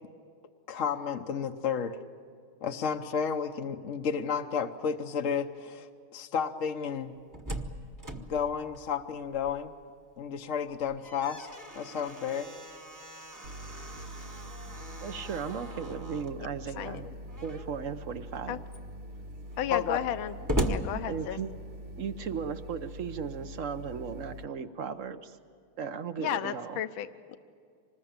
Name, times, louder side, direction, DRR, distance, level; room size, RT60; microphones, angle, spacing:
voice 1, 0.7-2.0 2.6-7.1 8.1-9.7 10.2-11.5 11.7-12.5 19.7-20.0, left 7 dB, 50° left, 5 dB, 1.0 m, -32 dB
Slam, 7.0-9.8 10.2-10.3 10.7-16.4 17.3-17.8 18.3-18.4 18.7-21.8, right 1 dB, 15° right, 0.9 m, -38 dB
sound 1, 13.4-24.4, equal, 85° right, 2.1 m, -44 dB
voice 2, 15.0-17.1 17.4-18.6 21.1-21.5 21.9-25.4 25.8-26.8, right 6 dB, 55° right, 11 dB, 0.9 m, -36 dB
voice 3, 19.6-20.3 20.7-21.4 26.2-27.4, left 11 dB, 75° left, 11 dB, 1.6 m, -33 dB
26.0 x 20.5 x 8.9 m, 2.2 s
omnidirectional pair, 2.3 m